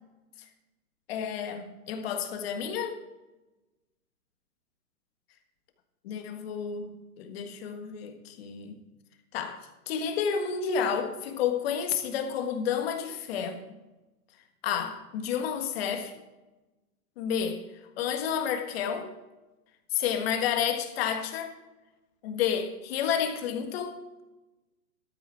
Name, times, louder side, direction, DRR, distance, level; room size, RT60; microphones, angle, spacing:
voice 1, 1.1-3.0 6.0-8.7 9.3-13.6 14.6-16.2 17.2-17.6 18.0-19.1 19.9-21.5 22.2-24.0, left 7 dB, 40° left, 1.6 m, -30 dB
13.5 x 9.4 x 4.5 m
hypercardioid pair, 150°, 46 cm